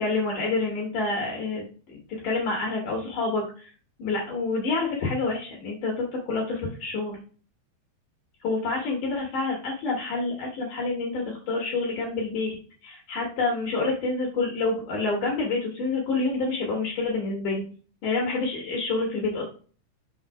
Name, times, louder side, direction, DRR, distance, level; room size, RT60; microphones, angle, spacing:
voice 1, 0.0-1.6 2.1-3.7 4.0-5.9 6.3-7.2 8.4-12.6 12.8-17.6 18.0-19.4, left 3 dB, 65° left, -1 dB, 2.4 m, -27 dB
6.0 x 3.9 x 4.7 m, 0.41 s
omnidirectional pair, 4.6 m